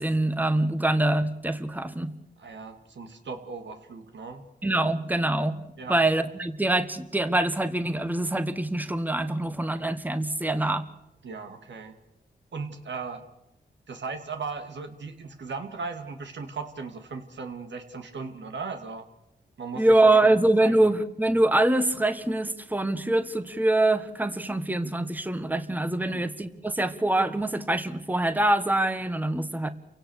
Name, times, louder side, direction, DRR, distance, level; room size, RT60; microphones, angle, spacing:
voice 1, 0.0-2.1 4.6-10.9 19.7-29.7, right 2 dB, 10° right, 10 dB, 1.3 m, -24 dB
voice 2, 2.4-4.4 5.8-6.0 11.2-12.0 12.5-13.3 13.9-19.1 19.6-20.7 26.0-26.3, right 4 dB, 75° right, 6 dB, 2.4 m, -37 dB
29.0 x 17.0 x 6.5 m, 0.88 s
cardioid pair, 60°, 19 cm